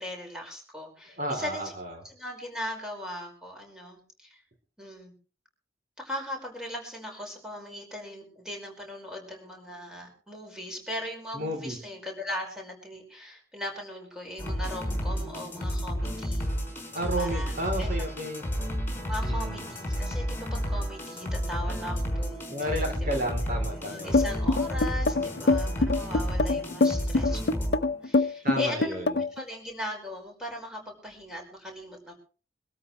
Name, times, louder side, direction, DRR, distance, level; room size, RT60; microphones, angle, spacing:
voice 1, 0.0-1.7 2.0-4.4 4.8-5.1 6.0-16.5 17.2-17.9 19.1-23.1 23.7-32.1, left 1 dB, 5° right, 0 dB, 5.1 m, -39 dB
voice 2, 1.2-1.9 11.3-11.8 16.9-18.5 19.2-19.6 22.5-24.2 28.4-29.0, equal, 50° right, 3 dB, 3.5 m, -32 dB
sound 1, 14.4-28.0, equal, 10° left, 5.7 m, -31 dB
sound 2, 24.1-29.4, left 3 dB, 65° left, 0.7 m, -24 dB
25.0 x 13.5 x 3.2 m, 0.38 s
head